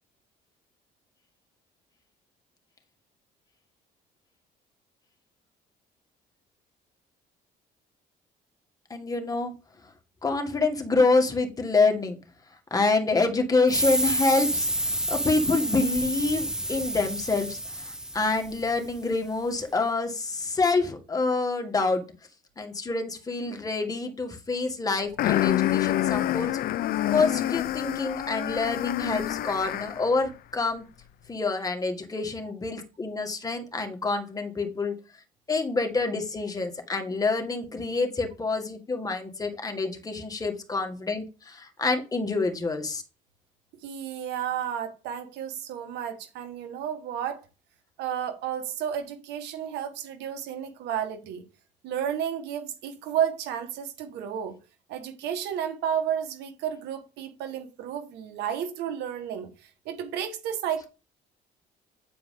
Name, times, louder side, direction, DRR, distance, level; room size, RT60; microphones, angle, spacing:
voice 1, 8.9-9.5 10.2-12.2 12.7-22.0 22.6-26.5 27.1-30.8 31.3-34.9 35.5-43.0, left 3 dB, 20° left, 1.8 m, -27 dB
sound 1, 13.7-19.0, right 1 dB, 5° right, 1.0 m, -29 dB
sound 2, 25.2-30.1, left 13 dB, 60° left, 0.5 m, -27 dB
voice 2, 43.8-47.4 48.0-51.4 51.8-54.6 54.9-59.5 59.8-60.9, right 9 dB, 85° right, 1.5 m, -32 dB
9.1 x 4.7 x 3.8 m
cardioid pair, 110°, 17 cm